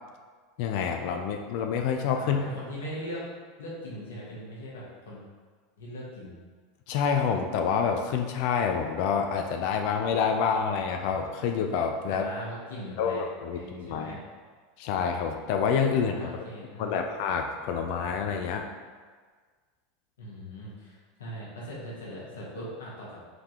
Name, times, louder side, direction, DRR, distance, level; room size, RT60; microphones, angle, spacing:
voice 1, 0.6-2.4 6.9-12.3 13.0-14.1 14.8-16.4 16.8-18.7, left 6 dB, 60° left, 4 dB, 0.4 m, -27 dB
voice 2, 2.2-3.2 3.6-5.2 5.8-6.4 12.1-13.2 13.5-14.2 16.0-17.1 20.2-23.2, equal, 80° left, -5 dB, 1.2 m, -40 dB
3.7 x 3.5 x 2.9 m, 1.5 s
hypercardioid pair, 90°, 0 cm